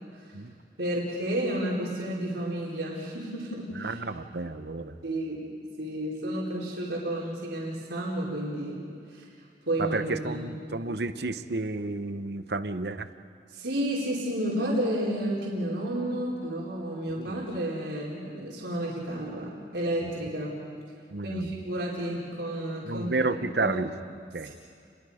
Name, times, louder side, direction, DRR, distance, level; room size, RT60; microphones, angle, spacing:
voice 1, 0.8-4.0 5.0-5.5 5.8-9.2 9.7-10.6 13.5-20.6 21.2-23.1 23.4-23.8, right 1 dB, 80° right, -4 dB, 4.6 m, -31 dB
voice 2, 3.7-5.0 9.8-13.1 17.1-17.4 20.0-20.1 21.1-21.5 22.9-23.9 24.3-24.5, right 3 dB, 65° right, 11 dB, 0.9 m, -31 dB
29.5 x 22.0 x 5.1 m, 2.4 s
head